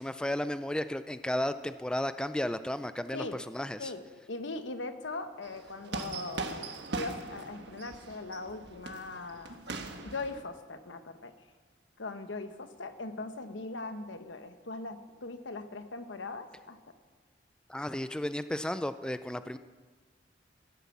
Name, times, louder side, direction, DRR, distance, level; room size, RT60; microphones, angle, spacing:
voice 1, 0.0-3.9 17.7-19.6, left 1 dB, 5° left, 12 dB, 0.3 m, -33 dB
voice 2, 4.3-9.6 10.0-11.3 12.0-16.8, left 3 dB, 85° left, 9 dB, 1.0 m, -40 dB
sound 1, 5.4-10.4, right 3 dB, 65° right, 1.3 m, -40 dB
14.5 x 9.5 x 7.2 m, 1.4 s
head